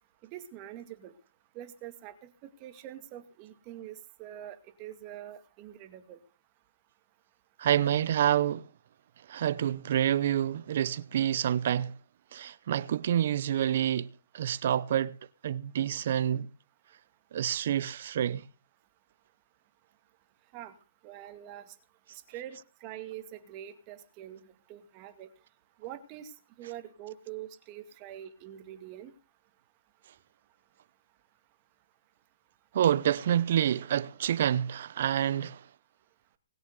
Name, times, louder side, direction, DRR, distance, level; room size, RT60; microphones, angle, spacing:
voice 1, 0.3-1.1 1.5-2.1 2.4-6.2 20.5-20.7 21.0-21.7 22.3-24.4 24.7-25.3 25.8-26.3 26.6-29.1, right 12 dB, 25° right, 2.1 m, -44 dB
voice 2, 7.6-8.7 9.3-11.9 12.3-15.2 15.4-16.5 17.3-18.4 32.7-35.6, right 10 dB, 50° right, 0.7 m, -28 dB
20.0 x 7.1 x 8.0 m
hypercardioid pair, 160°, 0 cm